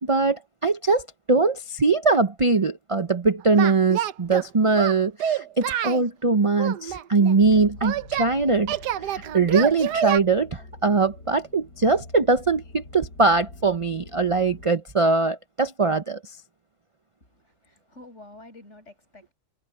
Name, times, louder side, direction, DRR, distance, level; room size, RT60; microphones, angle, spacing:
voice 1, 0.0-8.8 9.1-16.2, right 3 dB, 35° right, 0.5 m, -22 dB
Singing, 3.5-4.5 4.8-6.0 6.6-8.3 8.7-10.2, right 10 dB, 90° right, 1.4 m, -27 dB
sound 1, 7.4-14.7, left 2 dB, 80° left, 6.4 m, -46 dB
voice 2, 17.2-19.3, left 2 dB, 45° left, 8.2 m, -48 dB
omnidirectional pair, 1.7 m